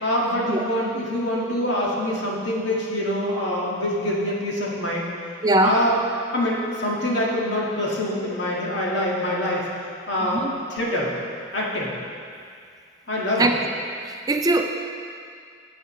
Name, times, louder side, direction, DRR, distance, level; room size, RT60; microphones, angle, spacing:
voice 1, 0.0-5.1 5.6-6.1 6.3-9.7 10.1-11.1 11.5-11.9 13.1-13.5, left 1 dB, 75° left, -4 dB, 1.9 m, -25 dB
voice 2, 5.4-5.8 10.3-10.5 13.4-13.5 14.0-14.6, right 2 dB, 20° right, 4 dB, 0.4 m, -20 dB
15.0 x 7.9 x 3.2 m, 2.3 s
head